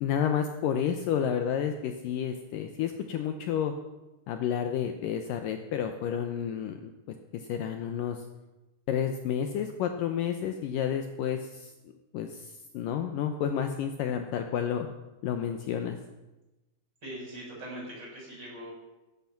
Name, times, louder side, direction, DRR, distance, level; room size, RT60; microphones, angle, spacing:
voice 1, 0.0-3.7 4.3-6.9 7.3-8.2 8.9-11.7 12.1-14.9 15.2-16.0, left 8 dB, 75° left, 7 dB, 2.3 m, -30 dB
voice 2, 17.0-18.7, right 1 dB, 25° right, -3 dB, 7.6 m, -41 dB
17.5 x 14.0 x 5.9 m, 1.0 s
omnidirectional pair, 4.4 m